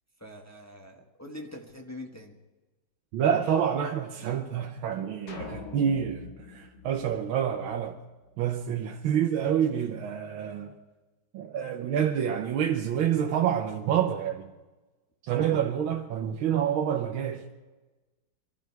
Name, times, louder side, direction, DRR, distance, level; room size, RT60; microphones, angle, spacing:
voice 1, 0.2-2.4, left 1 dB, 10° left, 1.1 m, -43 dB
voice 2, 3.1-8.0 8.4-10.7 11.3-14.5 15.3-17.4, right 9 dB, 75° right, 1.7 m, -27 dB
sound 1, 5.3-7.8, left 5 dB, 75° left, 2.4 m, -44 dB
24.0 x 12.5 x 4.6 m
omnidirectional pair, 2.3 m